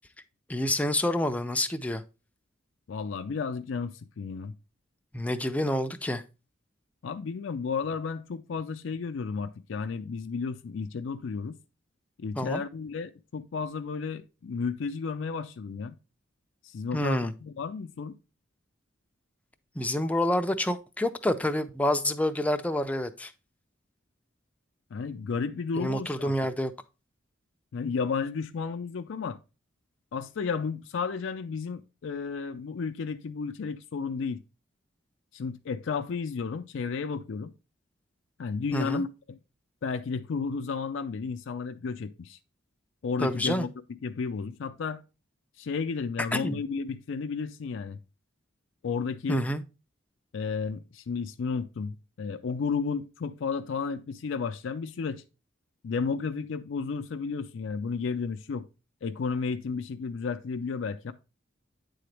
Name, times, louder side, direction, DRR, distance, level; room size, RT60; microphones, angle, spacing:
voice 1, 0.5-2.0 5.1-6.2 12.4-12.6 16.9-17.3 19.8-23.3 25.8-26.7 38.7-39.0 43.2-43.7 46.3-46.6 49.3-49.6, left 1 dB, 10° left, 0.4 m, -28 dB
voice 2, 2.9-4.5 7.0-11.6 12.2-15.9 16.6-18.1 24.9-26.3 27.7-29.4 30.1-34.4 35.3-37.5 38.4-39.4 39.8-42.4 43.0-43.7 44.0-45.0 45.6-48.0 48.8-49.4 50.3-55.2 55.8-58.7 59.0-61.1, left 5 dB, 70° left, 0.4 m, -33 dB
9.1 x 3.9 x 3.2 m
head